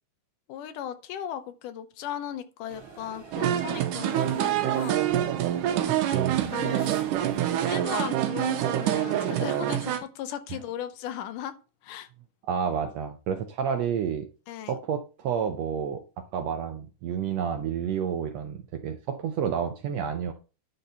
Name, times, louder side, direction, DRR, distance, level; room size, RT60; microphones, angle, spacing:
voice 1, 0.5-5.0 6.4-7.0 7.6-11.6 11.8-12.1 14.5-14.8, left 10 dB, 80° left, 2.3 m, -37 dB
sound 1, 2.7-7.7, right 4 dB, 50° right, 2.9 m, -48 dB
sound 2, 3.3-10.0, right 12 dB, 90° right, 2.4 m, -26 dB
voice 2, 5.9-6.5 12.5-14.3 14.7-20.3, right 7 dB, 75° right, 1.6 m, -30 dB
10.5 x 4.1 x 5.5 m
omnidirectional pair, 3.7 m